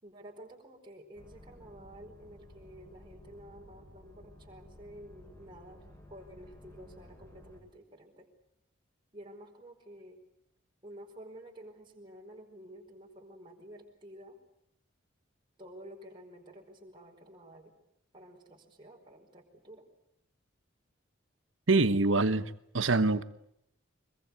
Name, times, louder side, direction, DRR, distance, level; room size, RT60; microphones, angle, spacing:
voice 1, 0.0-8.3 9.1-10.2 10.8-14.4 15.6-17.7 18.1-19.9, right 1 dB, 25° right, 4.7 m, -51 dB
sound 1, 1.1-7.6, left 1 dB, 15° left, 6.9 m, -54 dB
voice 2, 21.7-23.2, right 3 dB, 85° right, 1.2 m, -25 dB
24.5 x 22.5 x 8.4 m
head